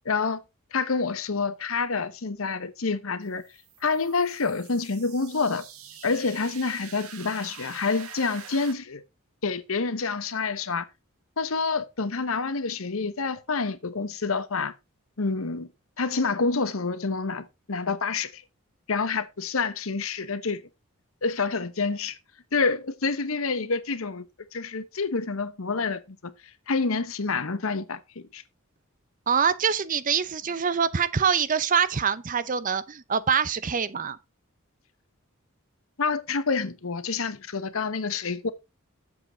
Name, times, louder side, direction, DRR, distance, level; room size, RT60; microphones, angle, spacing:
voice 1, 0.0-0.4 0.7-3.4 3.8-5.7 6.0-9.0 9.4-10.9 11.4-14.7 15.2-15.7 16.0-18.4 18.9-20.6 21.2-22.2 22.5-24.2 24.5-26.3 26.7-28.4 36.0-38.5, left 4 dB, 70° left, 0.9 m, -28 dB
sound 1, 3.2-8.7, right 7 dB, 85° right, 1.7 m, -45 dB
voice 2, 29.3-34.2, right 6 dB, 35° right, 0.6 m, -25 dB
8.6 x 7.5 x 3.9 m
head